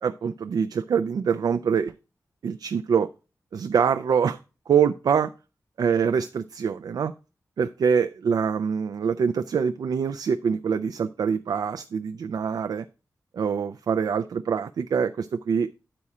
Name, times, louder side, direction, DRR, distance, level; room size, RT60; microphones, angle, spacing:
voice 1, 0.0-1.9 2.4-3.1 3.5-4.4 4.7-5.3 5.8-7.1 7.6-12.9 13.3-15.7, right 6 dB, 75° right, 9 dB, 0.3 m, -24 dB
8.6 x 4.2 x 4.8 m, 0.32 s
wide cardioid pair, 135°, 7 cm